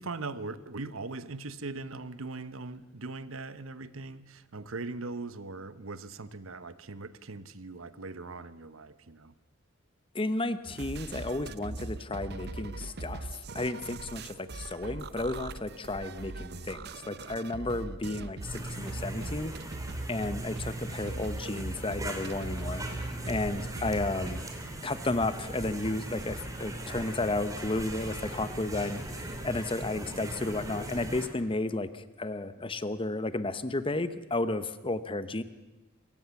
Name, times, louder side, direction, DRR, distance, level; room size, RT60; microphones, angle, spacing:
voice 1, 0.0-9.3, right 3 dB, 80° right, 14 dB, 1.0 m, -40 dB
voice 2, 10.1-13.3 13.5-19.5 20.1-24.4 24.8-35.4, left 2 dB, 25° left, 13 dB, 1.0 m, -33 dB
sound 1, 10.7-24.4, right 2 dB, 55° right, 0.8 m, -40 dB
sound 2, 18.4-31.3, right 1 dB, 15° right, 3.1 m, -39 dB
27.0 x 16.0 x 7.1 m, 1.1 s
head